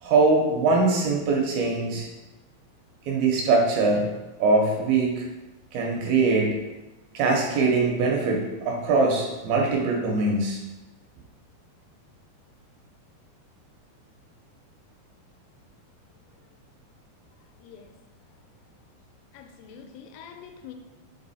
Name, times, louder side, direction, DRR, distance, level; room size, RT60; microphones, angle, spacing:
voice 1, 0.0-2.1 3.1-4.1 4.4-5.3 5.7-6.6 7.1-10.6, right 3 dB, 75° right, 0 dB, 2.5 m, -22 dB
voice 2, 19.3-20.7, left 8 dB, 85° left, 5 dB, 2.7 m, -45 dB
6.2 x 3.7 x 4.1 m, 1.1 s
omnidirectional pair, 4.7 m